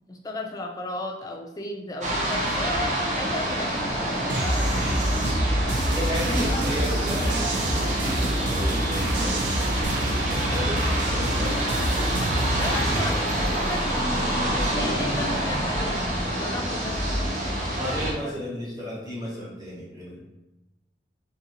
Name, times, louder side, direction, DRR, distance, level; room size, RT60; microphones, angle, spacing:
voice 1, 0.1-6.0 6.2-6.9 12.6-17.8 18.2-18.4, left 1 dB, 20° left, 2 dB, 0.3 m, -35 dB
sound 1, 2.0-18.1, right 1 dB, 40° right, 0.6 m, -27 dB
sound 2, 4.3-13.1, right 1 dB, 85° right, 0.5 m, -27 dB
voice 2, 5.9-11.6 17.8-20.2, left 1 dB, 20° right, -6 dB, 1.0 m, -34 dB
2.7 x 2.7 x 2.8 m, 0.99 s
head